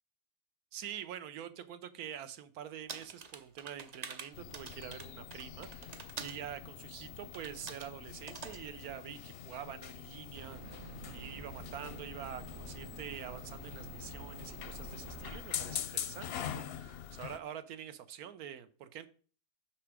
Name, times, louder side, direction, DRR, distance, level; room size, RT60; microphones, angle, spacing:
voice 1, 0.7-19.1, right 9 dB, 85° right, 1.2 m, -46 dB
sound 1, 2.9-6.4 7.3-7.9 8.3-8.6, right 5 dB, 45° right, 0.5 m, -46 dB
sound 2, 4.3-17.4, left 9 dB, 60° left, 0.6 m, -44 dB
sound 3, 10.3-15.4, right 3 dB, 60° right, 1.4 m, -49 dB
6.3 x 5.9 x 4.8 m
omnidirectional pair, 1.5 m